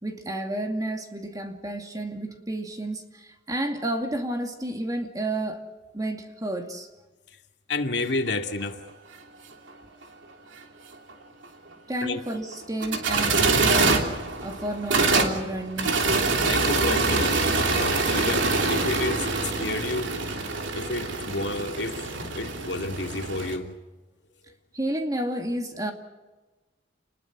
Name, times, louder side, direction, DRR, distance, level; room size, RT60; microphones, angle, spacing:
voice 1, 0.0-5.6 5.9-6.9 11.9-14.1 14.4-16.0 24.7-25.9, right 1 dB, 20° right, 4 dB, 2.4 m, -31 dB
voice 2, 7.7-8.8 12.0-12.2 16.4-17.4 17.7-20.1 20.8-22.0 22.4-23.7, left 2 dB, 65° left, 4 dB, 2.4 m, -30 dB
sound 1, 8.3-8.4 8.6-8.7 11.1-11.2 12.5-23.6, right 3 dB, 85° right, 3.1 m, -25 dB
29.0 x 21.0 x 6.1 m, 1.2 s
head